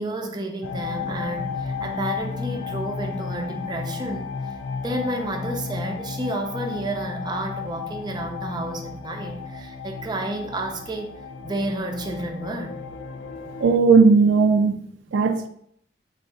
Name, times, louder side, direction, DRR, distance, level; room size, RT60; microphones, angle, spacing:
voice 1, 0.0-4.3 4.8-11.1 11.4-12.8, right 1 dB, 25° right, 3 dB, 0.4 m, -31 dB
sound 1, 0.6-13.8, left 5 dB, 90° left, 0.4 m, -33 dB
voice 2, 13.6-14.8 15.1-15.5, right 4 dB, 90° right, 7 dB, 0.4 m, -16 dB
3.5 x 2.4 x 3.8 m, 0.67 s
head